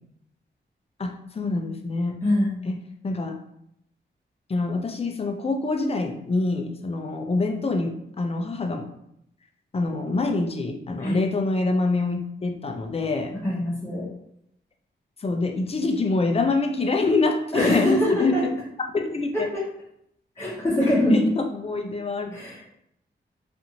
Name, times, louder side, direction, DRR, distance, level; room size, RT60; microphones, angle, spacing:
voice 1, 1.0-2.2 2.6-2.8 3.0-3.4 4.5-8.9 9.7-13.3 15.2-18.5 18.9-19.5 20.8-22.4, left 3 dB, 30° left, 4 dB, 0.4 m, -25 dB
voice 2, 13.4-14.0 17.5-18.4 20.4-21.1 22.3-22.6, left 1 dB, 10° left, -6 dB, 0.9 m, -23 dB
2.6 x 2.5 x 2.8 m, 0.76 s
cardioid pair, 80°, 20 cm